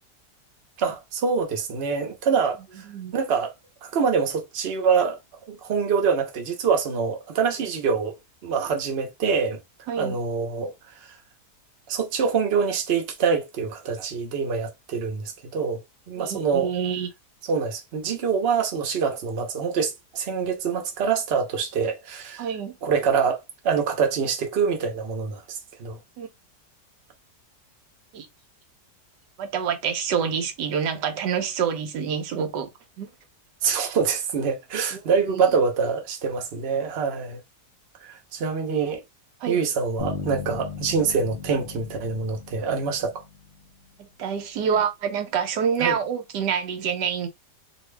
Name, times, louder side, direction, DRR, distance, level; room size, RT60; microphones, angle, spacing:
voice 1, 0.8-2.8 3.1-3.5 3.8-5.2 5.5-8.1 8.4-9.6 10.0-10.7 11.9-15.8 16.1-16.7 17.4-22.4 22.8-26.0 33.6-37.4 38.0-39.0 39.5-43.2 45.8-45.9, right 6 dB, 45° right, 0.9 m, -25 dB
voice 2, 9.9-10.2 16.2-17.1 22.4-22.8 26.2-26.3 28.1-28.3 29.4-32.7 33.0-33.1 34.9-35.0 35.3-35.4 39.4-39.6 44.0-47.3, right 7 dB, 85° right, 1.4 m, -27 dB
sound 1, 40.0-43.7, left 5 dB, 55° left, 0.7 m, -37 dB
2.8 x 2.6 x 3.3 m
omnidirectional pair, 1.8 m